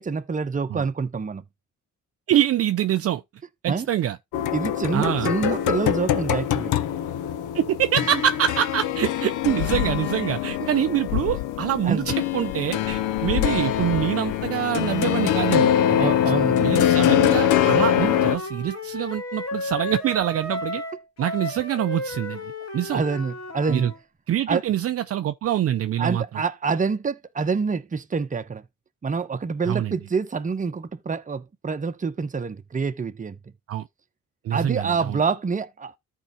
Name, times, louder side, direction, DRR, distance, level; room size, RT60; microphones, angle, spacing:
voice 1, 0.0-1.4 3.7-3.9 4.5-6.7 11.8-12.0 15.9-16.6 22.9-23.9 24.5-24.6 26.0-28.6 29.0-33.4 34.5-35.9, right 5 dB, 25° right, 0.9 m, -26 dB
voice 2, 2.3-3.2 3.6-4.2 4.9-5.3 7.5-16.1 16.6-20.8 21.2-23.0 23.7-23.9 24.3-26.2 29.7-30.0 33.7-33.9 34.4-35.2, right 11 dB, 50° right, 0.5 m, -25 dB
sound 1, 4.3-18.4, left 10 dB, 85° left, 0.6 m, -23 dB
Wind instrument woodwind instrument, 17.7-24.0, left 1 dB, 55° left, 2.9 m, -33 dB
13.5 x 4.6 x 2.8 m
cardioid pair, 90°, 30 cm